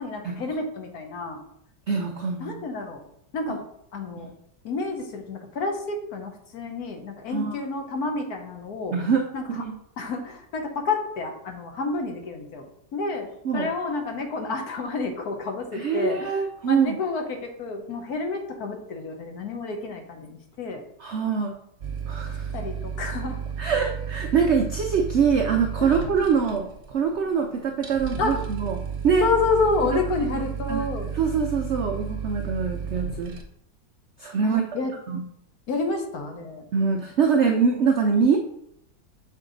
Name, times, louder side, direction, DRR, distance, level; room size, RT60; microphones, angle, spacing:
voice 1, 0.0-1.4 2.4-3.0 3.3-3.6 3.9-4.3 4.6-9.0 9.3-9.6 10.0-20.8 22.5-23.4 25.8-26.0 28.2-28.5 29.2-31.1 34.4-34.9 35.7-36.7, left 3 dB, 60° left, 4 dB, 1.3 m, -29 dB
voice 2, 1.9-2.5 3.5-3.6 4.2-4.3 7.3-7.6 8.9-9.3 9.6-9.7 13.4-13.7 15.7-17.0 21.0-21.6 22.1-22.5 23.6-28.8 29.0-29.3 30.7-30.9 31.1-33.3 34.2-34.6 35.1-35.2 36.7-38.4, right 6 dB, 85° right, 3 dB, 0.6 m, -24 dB
sound 1, 21.8-33.4, right 7 dB, 45° right, 0.9 m, -33 dB
6.5 x 4.6 x 3.9 m, 0.74 s
omnidirectional pair, 2.0 m